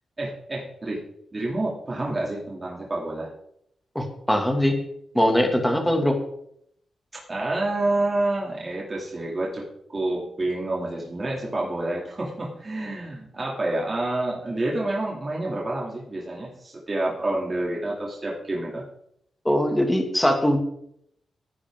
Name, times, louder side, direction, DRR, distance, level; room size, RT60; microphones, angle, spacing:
voice 1, 0.2-1.0 1.3-3.3 7.3-9.6 9.9-18.8, right 2 dB, 25° right, -4 dB, 2.8 m, -28 dB
voice 2, 3.9-4.7 5.1-6.1 19.4-20.6, equal, 5° left, 2 dB, 2.3 m, -21 dB
17.0 x 9.9 x 3.8 m, 0.73 s
wide cardioid pair, 150°, 0 cm